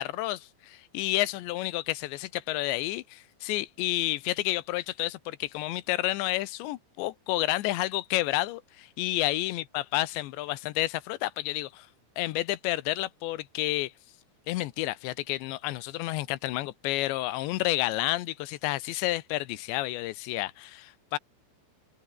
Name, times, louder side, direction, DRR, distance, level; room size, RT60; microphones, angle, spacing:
voice 1, 0.0-11.9 12.2-13.9 14.5-21.2, left 17 dB, 80° left, 3.0 m, -30 dB
open air
omnidirectional pair, 5.6 m